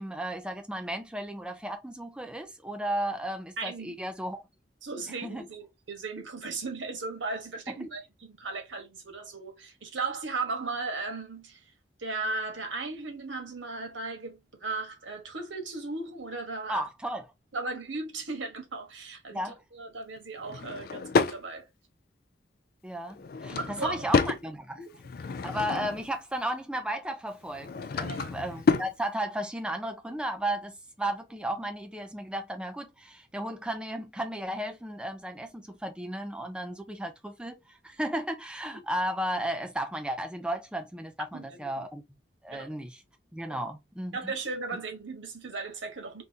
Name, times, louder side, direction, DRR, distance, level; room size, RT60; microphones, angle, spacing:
voice 1, 0.0-4.4 5.2-5.5 7.7-7.9 16.7-17.3 19.3-19.6 22.8-24.8 25.4-42.0 42.4-43.0 43.3-44.3, right 1 dB, 5° right, 0.5 m, -34 dB
voice 2, 3.6-3.9 4.8-11.6 12.0-16.8 17.5-21.7 23.5-24.3 24.8-25.0 28.0-28.3 38.7-38.8 41.3-41.8 42.5-42.7 43.5-43.6 44.1-46.2, right 3 dB, 90° right, 1.1 m, -36 dB
Drawer open or close / Wood, 20.4-21.4 23.1-24.4 24.9-26.1 27.4-28.9, left 4 dB, 50° left, 0.3 m, -29 dB
3.6 x 2.6 x 2.7 m
head